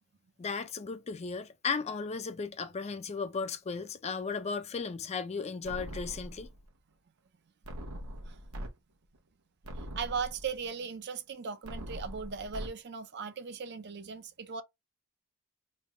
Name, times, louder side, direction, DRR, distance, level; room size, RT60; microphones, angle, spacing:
voice 1, 0.4-6.5, left 5 dB, 30° left, 0.4 m, -35 dB
sound 1, 5.6-6.7 7.6-8.7 9.1-9.2 9.6-10.7 11.6-12.7, equal, 80° right, 1.0 m, -42 dB
voice 2, 10.0-14.6, right 5 dB, 50° right, 0.5 m, -38 dB
3.3 x 2.3 x 4.1 m
head